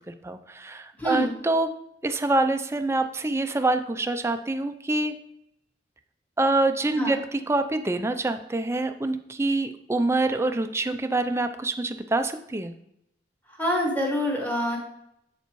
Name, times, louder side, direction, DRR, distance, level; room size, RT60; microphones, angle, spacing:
voice 1, 0.2-1.7 2.0-5.1 6.4-12.7, right 2 dB, 15° right, 8 dB, 0.4 m, -26 dB
voice 2, 1.0-1.3 6.9-7.2 13.5-14.8, equal, 10° left, -1 dB, 1.7 m, -26 dB
7.9 x 7.0 x 3.0 m, 0.77 s
head